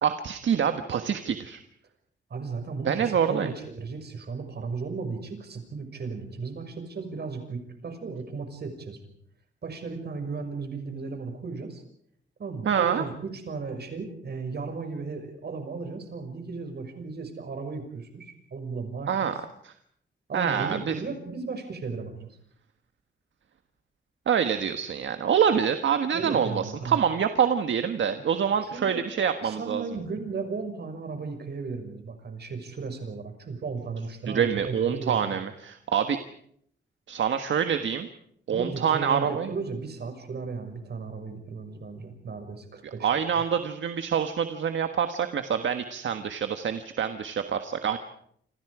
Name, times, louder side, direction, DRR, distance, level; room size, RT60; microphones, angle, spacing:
voice 1, 0.0-1.6 2.9-3.5 12.6-13.1 19.1-19.3 19.6-19.7 20.3-21.0 24.3-29.8 34.3-36.2 37.1-38.1 38.5-39.5 42.8-48.0, right 8 dB, 80° right, 8 dB, 1.5 m, -26 dB
voice 2, 2.3-9.0 9.6-11.8 12.4-19.3 20.3-22.3 26.1-27.0 28.2-28.3 28.6-29.1 29.4-35.4 38.5-43.1, right 4 dB, 60° right, 6 dB, 6.0 m, -35 dB
28.5 x 27.0 x 5.0 m, 0.67 s
wide cardioid pair, 125°, 19 cm